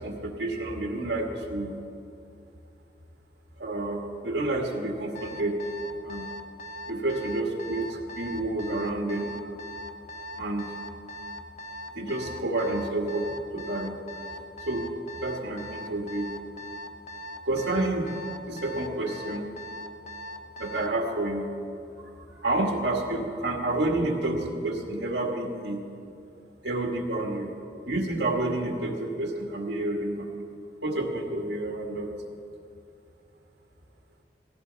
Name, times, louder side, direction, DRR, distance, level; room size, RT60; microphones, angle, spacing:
voice 1, 0.0-1.8 3.6-5.6 6.0-6.3 6.9-9.3 10.4-10.7 11.9-13.9 14.7-14.9 15.2-16.3 17.4-18.2 18.5-19.5 20.6-21.5 22.0-25.8 26.6-27.5 27.9-30.4 30.8-32.1, right 2 dB, 85° right, 1 dB, 1.9 m, -29 dB
Alarm, 5.1-21.0, equal, 40° left, 0.7 m, -40 dB
18.5 x 15.5 x 4.1 m, 2.6 s
head